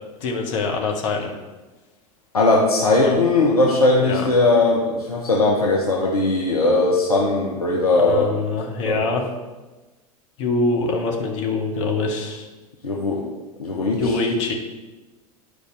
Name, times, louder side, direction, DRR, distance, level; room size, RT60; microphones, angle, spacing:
voice 1, 0.2-1.3 3.0-3.2 4.0-4.2 8.0-9.3 10.4-12.5 14.0-14.5, left 3 dB, 55° left, 1 dB, 1.4 m, -24 dB
voice 2, 2.3-8.2 8.9-9.0 12.8-13.2 13.6-14.1, left 2 dB, 80° left, -2 dB, 1.0 m, -19 dB
11.5 x 4.8 x 3.3 m, 1.2 s
figure-of-eight pair, 80°, 19 cm